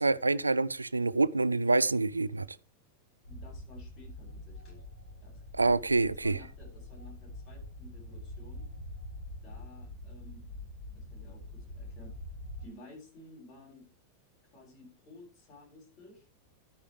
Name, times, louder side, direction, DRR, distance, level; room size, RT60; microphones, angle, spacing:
voice 1, 0.0-2.5 5.6-6.4, right 3 dB, 80° right, 0.4 m, -26 dB
sound 1, 3.2-12.7, left 1 dB, 85° left, 5.8 m, -45 dB
voice 2, 3.3-4.8 5.2-5.4 6.0-8.7 9.4-10.5 10.9-12.2 12.6-13.9 14.5-16.3, left 1 dB, 35° left, 7.7 m, -54 dB
13.0 x 9.9 x 3.3 m
figure-of-eight pair, 90°, 0 cm